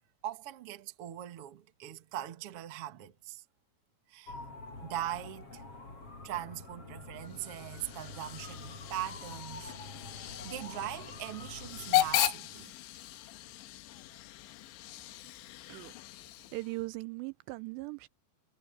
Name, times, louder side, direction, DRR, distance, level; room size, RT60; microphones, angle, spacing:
voice 1, 0.0-3.4 4.1-4.4 4.8-5.6 6.2-9.7 10.2-12.7 14.1-14.2, right 12 dB, 65° right, 1.4 m, -41 dB
sound 1, 4.3-12.3, left 3 dB, 30° left, 8.0 m, -47 dB
Hiss / Train / Alarm, 7.2-16.9, left 15 dB, 90° left, 3.2 m, -36 dB
voice 2, 16.5-18.1, right 22 dB, 80° right, 2.6 m, -39 dB
omnidirectional pair, 5.2 m